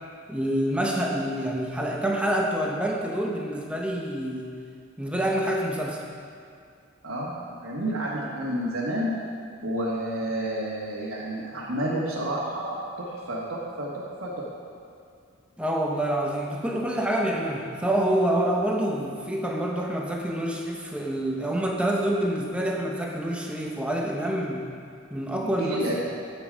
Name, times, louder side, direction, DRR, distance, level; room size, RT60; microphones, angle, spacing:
voice 1, 0.3-4.5 5.0-6.0 15.6-24.7 25.1-25.8, right 1 dB, 5° right, -1 dB, 0.8 m, -27 dB
voice 2, 7.0-9.1 9.6-14.5 25.4-26.0, right 1 dB, 75° right, -6 dB, 1.5 m, -30 dB
11.0 x 8.2 x 5.1 m, 2.3 s
head